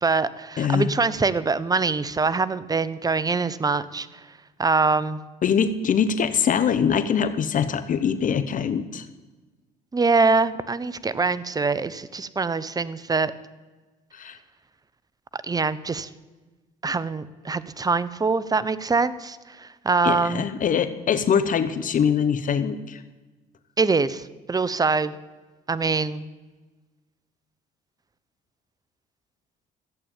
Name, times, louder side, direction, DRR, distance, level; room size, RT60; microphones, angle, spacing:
voice 1, 0.0-4.2 4.6-5.2 9.9-13.3 15.3-16.1 16.8-20.4 23.8-25.1 25.7-26.3, right 4 dB, 20° right, 17 dB, 0.8 m, -24 dB
voice 2, 0.6-0.9 5.4-9.1 14.1-14.4 20.0-23.0, left 7 dB, 50° left, 12 dB, 0.9 m, -23 dB
14.0 x 8.6 x 8.9 m, 1.2 s
supercardioid pair, 75°, 17 cm